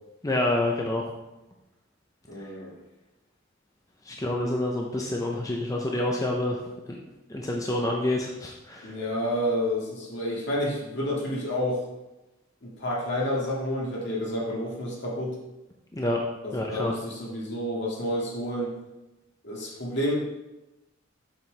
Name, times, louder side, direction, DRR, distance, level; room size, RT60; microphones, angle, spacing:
voice 1, 0.2-1.0 2.4-2.5 4.0-6.6 6.9-7.0 7.3-9.0 15.9-16.2 16.5-16.9, left 1 dB, 15° left, 0 dB, 0.6 m, -28 dB
voice 2, 2.3-2.7 8.8-11.8 12.6-15.3 16.4-18.7 19.4-20.1, equal, 60° left, -4 dB, 1.9 m, -29 dB
7.2 x 6.0 x 3.3 m, 1.0 s
head